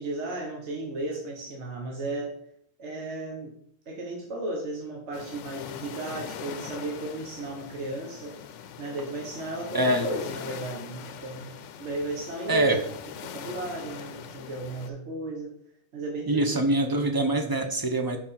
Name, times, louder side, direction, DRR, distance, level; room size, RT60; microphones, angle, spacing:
voice 1, 0.0-2.4 2.8-3.5 3.9-8.4 8.8-12.9 13.2-15.5 15.9-16.6, right 2 dB, 70° right, -1 dB, 1.4 m, -34 dB
sound 1, 5.1-14.9, left 8 dB, 85° left, 0.9 m, -42 dB
voice 2, 9.7-10.1 12.5-12.8 16.3-18.2, right 1 dB, 25° right, 6 dB, 0.6 m, -24 dB
4.9 x 4.7 x 5.6 m, 0.66 s
omnidirectional pair, 1.2 m